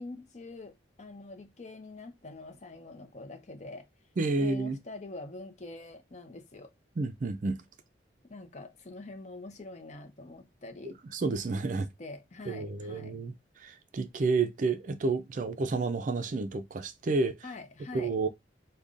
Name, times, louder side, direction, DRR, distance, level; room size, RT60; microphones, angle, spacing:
voice 1, 0.0-3.9 4.4-6.7 8.2-11.0 12.0-13.2 17.4-18.1, left 2 dB, 40° left, 0.6 m, -45 dB
voice 2, 4.2-4.8 7.0-7.6 10.8-11.9 12.5-17.4 17.9-18.3, right 3 dB, 45° right, 0.4 m, -30 dB
5.2 x 2.2 x 2.4 m
head